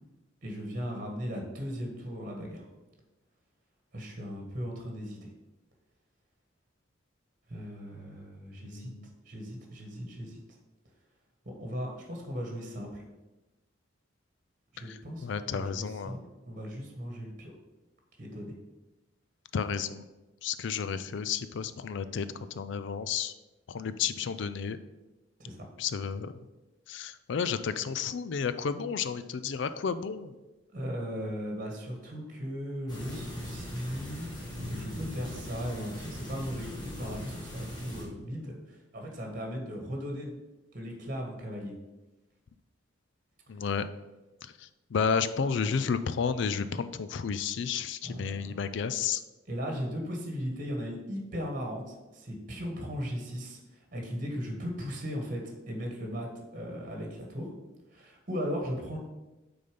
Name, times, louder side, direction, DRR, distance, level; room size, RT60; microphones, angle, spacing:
voice 1, 0.4-2.7 3.9-5.2 7.5-8.9 9.2-10.4 11.4-13.0 14.7-16.2 16.5-17.5 18.2-18.5 25.4-25.7 30.7-34.3 34.7-40.3 40.7-41.7 48.0-48.5 49.5-57.5 57.9-59.0, equal, 45° right, 1 dB, 1.5 m, -37 dB
voice 2, 8.6-9.1 14.8-16.2 19.5-20.0 20.4-23.3 23.7-24.8 25.8-26.3 26.9-30.4 43.5-43.9 44.4-49.2, left 6 dB, 65° left, 12 dB, 0.4 m, -32 dB
sound 1, 32.9-38.0, left 1 dB, 20° left, 1.9 m, -40 dB
6.6 x 4.0 x 5.3 m, 1.1 s
head